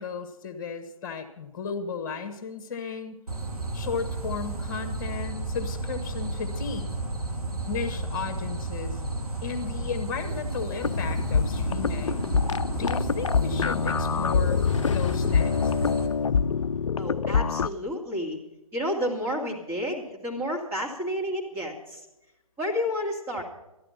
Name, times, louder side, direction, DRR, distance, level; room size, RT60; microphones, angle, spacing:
voice 1, 0.0-3.2 3.7-6.9 7.7-9.0 9.4-12.2 12.7-15.7, left 5 dB, 35° left, 8 dB, 1.5 m, -35 dB
sound 1, 3.3-16.1, right 2 dB, 90° right, 2.5 m, -32 dB
sound 2, 10.8-17.7, left 6 dB, 55° left, 0.5 m, -25 dB
voice 2, 17.0-18.4 18.7-22.1 22.6-23.4, equal, 15° right, -2 dB, 2.2 m, -30 dB
13.5 x 12.0 x 5.8 m, 0.97 s
figure-of-eight pair, 135°, 19 cm